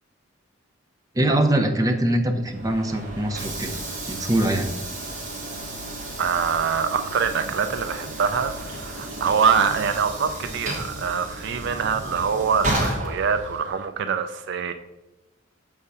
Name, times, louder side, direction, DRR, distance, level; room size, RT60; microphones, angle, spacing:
voice 1, 1.1-3.8 4.1-4.7, right 1 dB, 20° right, 4 dB, 0.6 m, -23 dB
Train / Sliding door, 2.4-13.8, right 1 dB, 40° right, 1.4 m, -33 dB
voice 2, 6.2-14.7, right 6 dB, 60° right, 9 dB, 0.4 m, -24 dB
6.6 x 3.5 x 5.5 m, 0.97 s
head